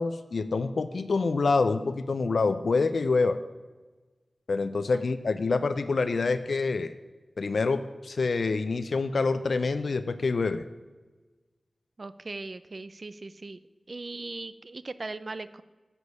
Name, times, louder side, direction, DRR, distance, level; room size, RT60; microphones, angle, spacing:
voice 1, 0.0-3.4 4.5-6.9 7.4-10.6, left 4 dB, 75° left, 11 dB, 0.4 m, -26 dB
voice 2, 12.0-13.6 13.9-15.6, right 3 dB, 50° right, 14 dB, 0.4 m, -39 dB
9.8 x 6.3 x 6.8 m, 1.3 s
wide cardioid pair, 85°, 0 cm